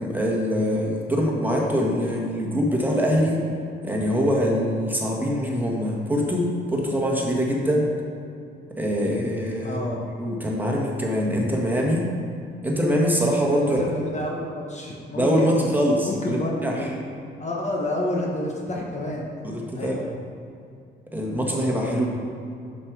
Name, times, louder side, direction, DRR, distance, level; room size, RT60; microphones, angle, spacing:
voice 1, 0.0-3.4 3.8-7.9 8.8-12.0 12.6-13.8 15.1-16.8 19.4-20.0 21.1-22.1, equal, 10° right, -2 dB, 1.7 m, -23 dB
voice 2, 9.6-10.0 13.6-15.7 16.0-17.0 17.4-19.3 19.7-20.0, left 1 dB, 35° left, -1 dB, 1.2 m, -29 dB
7.3 x 6.6 x 4.8 m, 2.5 s
cardioid pair, 90°, 20 cm